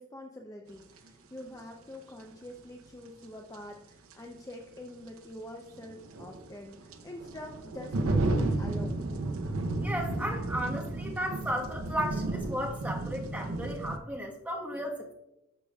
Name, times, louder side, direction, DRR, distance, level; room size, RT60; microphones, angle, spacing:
voice 1, 0.0-9.0, left 1 dB, 15° left, 2 dB, 0.5 m, -45 dB
sound 1, 1.0-1.1 3.5-3.6 4.1-4.2 5.7-14.0, right 2 dB, 75° right, 0.7 m, -32 dB
voice 2, 9.8-15.1, equal, 5° right, -1 dB, 1.2 m, -34 dB
11.5 x 6.6 x 2.3 m, 0.89 s
head